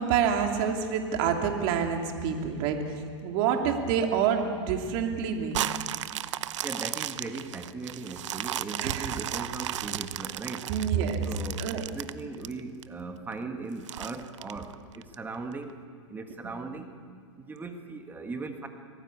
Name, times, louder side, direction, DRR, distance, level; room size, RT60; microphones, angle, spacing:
voice 1, 0.0-5.6 8.8-9.1 10.7-11.3 11.6-11.9 16.4-16.5, right 7 dB, 45° right, 3 dB, 2.8 m, -27 dB
sound 1, 5.5-12.8 13.3-13.4 13.9-15.1 15.7-15.8, right 12 dB, 70° right, 0.8 m, -34 dB
voice 2, 6.6-10.7 11.2-15.7 16.1-16.9 17.4-18.7, right 3 dB, 10° right, 5 dB, 1.6 m, -38 dB
25.0 x 17.5 x 8.4 m, 2.1 s
hypercardioid pair, 140°, 16 cm